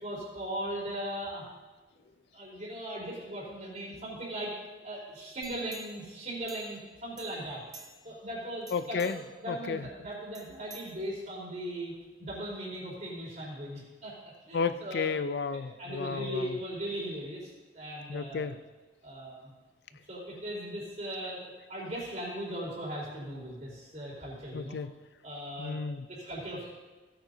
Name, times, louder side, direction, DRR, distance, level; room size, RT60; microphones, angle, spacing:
voice 1, 0.0-1.5 2.3-4.5 4.8-7.6 8.0-9.1 9.4-11.9 12.2-14.1 14.5-15.1 15.8-18.5 19.0-19.5 20.1-24.8 25.2-25.8 26.1-26.7, right 1 dB, 40° right, -4 dB, 4.0 m, -38 dB
sound 1, 5.4-6.9 7.2-8.2 8.6-9.4 10.3-11.5 11.9-12.0, right 3 dB, 20° right, 1.0 m, -51 dB
voice 2, 8.7-9.2 9.5-9.8 14.5-16.6 18.1-18.6 24.5-24.9 25.6-26.1, left 5 dB, 65° left, 12 dB, 0.4 m, -32 dB
17.0 x 9.0 x 2.7 m, 1.2 s
head